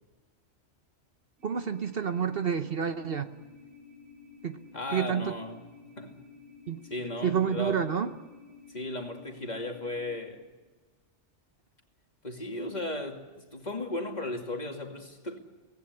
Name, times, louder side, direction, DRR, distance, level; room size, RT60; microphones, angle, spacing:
voice 1, 1.4-3.3 4.4-4.6 4.9-5.3 6.7-6.8 7.2-8.1, right 7 dB, 55° right, 1.1 m, -29 dB
sound 1, 1.4-10.1, left 5 dB, 80° right, 6.2 m, -52 dB
voice 2, 4.7-5.6 6.0-6.2 6.9-7.8 8.7-10.4 12.2-15.4, left 1 dB, 35° left, 2.7 m, -35 dB
24.5 x 18.0 x 9.7 m
omnidirectional pair, 1.2 m